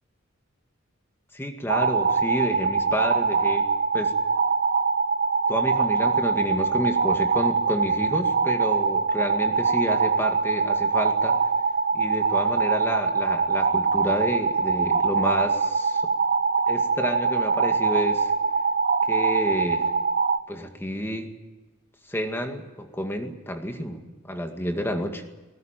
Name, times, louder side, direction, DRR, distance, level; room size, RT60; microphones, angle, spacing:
voice 1, 1.3-3.7 3.9-4.1 5.5-11.4 11.9-16.0 16.7-18.3 19.1-19.9 20.5-21.3 22.1-25.2, equal, 10° left, 5 dB, 2.1 m, -30 dB
sound 1, 1.7-20.4, right 5 dB, 50° right, 0.8 m, -23 dB
19.5 x 19.0 x 9.2 m, 1.2 s
head